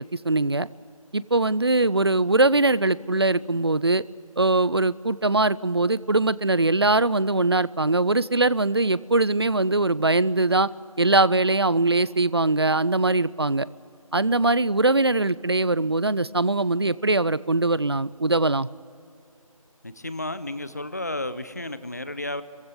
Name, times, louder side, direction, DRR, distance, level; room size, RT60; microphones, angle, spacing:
voice 1, 0.2-0.7 1.1-4.0 4.4-10.7 11.0-13.7 14.1-18.7, right 2 dB, 45° right, 20 dB, 0.4 m, -21 dB
voice 2, 19.8-22.4, left 2 dB, 30° left, 13 dB, 0.7 m, -32 dB
23.5 x 15.5 x 8.1 m, 2.6 s
figure-of-eight pair, 175°, 18 cm